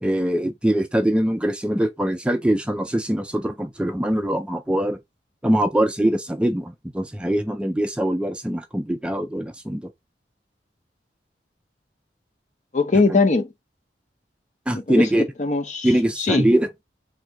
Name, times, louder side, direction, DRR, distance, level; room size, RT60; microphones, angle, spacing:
voice 1, 0.0-5.0 5.4-9.9 13.1-13.2 14.7-15.3 15.8-16.8, right 1 dB, 5° right, 0.3 m, -22 dB
voice 2, 12.7-13.5 14.7-15.1 15.4-15.9 16.2-16.5, left 3 dB, 45° left, 0.7 m, -20 dB
3.6 x 2.6 x 4.4 m
head